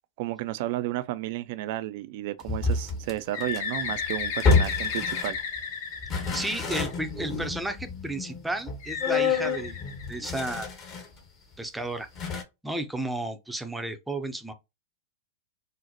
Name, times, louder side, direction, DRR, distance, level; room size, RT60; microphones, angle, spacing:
voice 1, 0.2-5.4, right 15 dB, 55° right, 0.3 m, -32 dB
sound 1, 2.4-5.6 6.0-11.2 11.5-11.6 12.2-12.4, left 4 dB, 35° left, 1.0 m, -29 dB
Bird, 3.3-7.1 8.8-10.6, left 6 dB, 60° left, 0.8 m, -33 dB
voice 2, 6.1-9.8 10.1-10.7 11.6-12.1 12.6-14.5, right 2 dB, 5° right, 0.5 m, -33 dB
3.8 x 2.1 x 2.7 m
hypercardioid pair, 100°, 0 cm